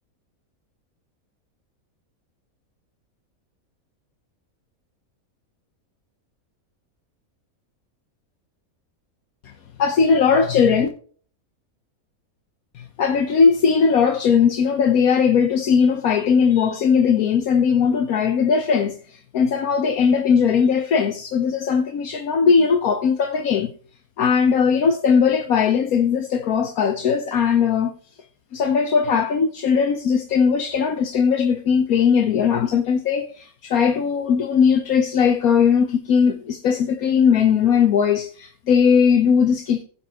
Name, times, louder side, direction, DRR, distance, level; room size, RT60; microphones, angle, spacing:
voice 1, 9.8-10.9 13.0-18.9 19.3-23.7 24.2-27.9 28.5-39.8, left 6 dB, 80° left, 1.4 m, -19 dB
16.0 x 7.2 x 2.9 m
omnidirectional pair, 1.5 m